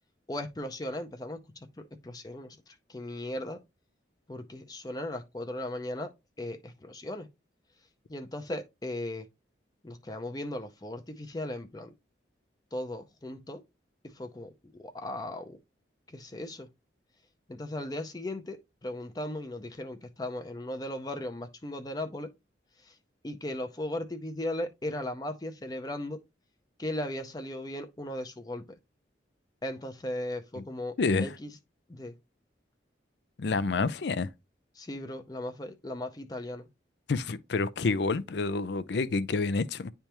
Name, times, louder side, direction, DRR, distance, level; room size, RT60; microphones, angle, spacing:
voice 1, 0.3-1.7 2.0-3.6 4.3-6.1 6.4-7.3 8.1-9.3 9.8-11.9 12.7-13.6 14.1-15.6 16.1-16.7 17.5-22.3 22.8-23.0 23.2-26.2 26.8-28.6 29.6-31.5 31.9-32.1 34.7-36.7, left 1 dB, 20° left, 0.5 m, -37 dB
voice 2, 31.0-31.3 33.4-34.3 37.1-39.9, left 3 dB, 70° left, 0.5 m, -28 dB
10.0 x 3.4 x 2.9 m
head